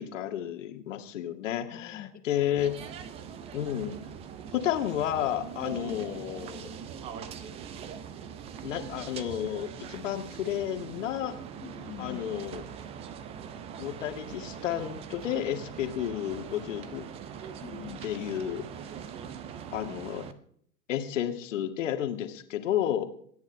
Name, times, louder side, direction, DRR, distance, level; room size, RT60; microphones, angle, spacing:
voice 1, 0.0-2.7 3.5-4.0 4.5-6.8 8.6-11.3 12.0-12.6 13.8-17.0 18.0-18.6 19.7-20.2 20.9-23.0, left 11 dB, 50° left, 7 dB, 1.9 m, -31 dB
voice 2, 1.7-2.1 2.4-2.8 5.6-6.0 11.6-12.2 17.6-18.0, left 12 dB, 20° left, 9 dB, 1.2 m, -44 dB
sound 1, 2.6-20.3, right 8 dB, 15° right, 0.6 m, -42 dB
27.5 x 9.5 x 3.3 m, 0.62 s
figure-of-eight pair, 100°, 47 cm